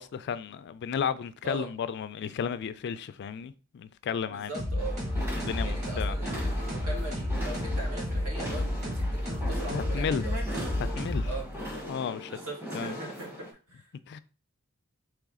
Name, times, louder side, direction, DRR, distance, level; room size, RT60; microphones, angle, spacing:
voice 1, 0.0-4.5 5.4-6.2 9.7-10.2 10.8-11.3 11.9-12.3 12.7-13.0 14.1-14.2, left 7 dB, 50° left, 0.3 m, -33 dB
voice 2, 4.3-5.0 5.6-10.4 11.2-11.5 12.3-13.8, right 2 dB, 75° right, 1.7 m, -41 dB
sound 1, 4.5-11.7, left 1 dB, 35° right, 1.8 m, -31 dB
sound 2, 4.8-13.5, equal, 10° right, 0.9 m, -39 dB
4.0 x 3.2 x 3.6 m
head